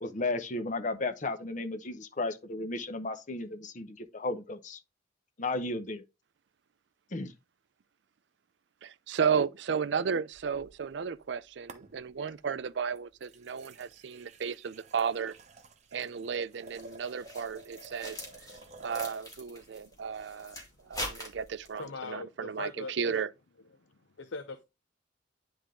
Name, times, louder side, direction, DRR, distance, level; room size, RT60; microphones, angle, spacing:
voice 1, 0.0-4.8 5.4-6.0 7.1-7.3, left 2 dB, 40° left, 0.8 m, -34 dB
voice 2, 8.8-15.3 15.9-18.3 18.8-20.6 20.9-23.3, right 6 dB, 65° right, 0.4 m, -33 dB
sound 1, 10.3-11.3 11.7-12.3 12.9-19.5 21.3-21.5, right 3 dB, 40° right, 0.8 m, -52 dB
sound 2, 16.7-21.8, left 1 dB, 20° left, 2.5 m, -43 dB
voice 3, 21.8-23.2 24.2-24.6, left 3 dB, 80° left, 0.7 m, -40 dB
9.7 x 3.4 x 3.7 m
head